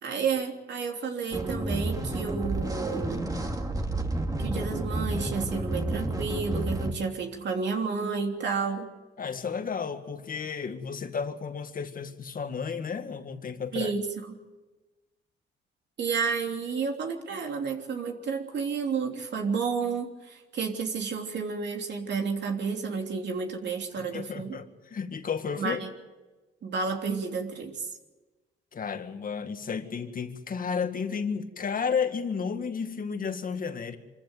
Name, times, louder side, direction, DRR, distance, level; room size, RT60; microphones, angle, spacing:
voice 1, 0.0-3.3 4.4-8.9 13.7-14.3 16.0-24.6 25.6-25.9 26.6-27.9, right 5 dB, 60° right, 3.2 m, -31 dB
sound 1, 1.3-6.9, right 1 dB, 15° right, 2.4 m, -30 dB
voice 2, 9.2-14.0 24.1-25.8 28.7-34.0, left 6 dB, 45° left, 1.9 m, -32 dB
25.0 x 15.0 x 9.2 m
cardioid pair, 90°, 20 cm